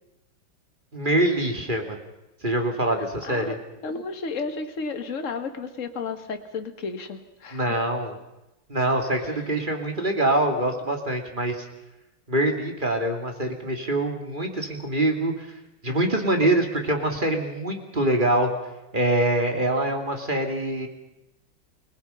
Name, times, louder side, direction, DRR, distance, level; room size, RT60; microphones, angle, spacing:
voice 1, 0.9-2.0 2.4-3.6 7.5-8.2 8.7-11.7 12.3-15.5 15.8-18.5 18.9-20.9, right 1 dB, 25° right, 4 dB, 2.9 m, -24 dB
voice 2, 3.2-3.6 3.8-7.8 9.2-9.4, left 4 dB, 40° left, 7 dB, 2.0 m, -33 dB
29.0 x 20.5 x 5.7 m, 0.95 s
omnidirectional pair, 2.3 m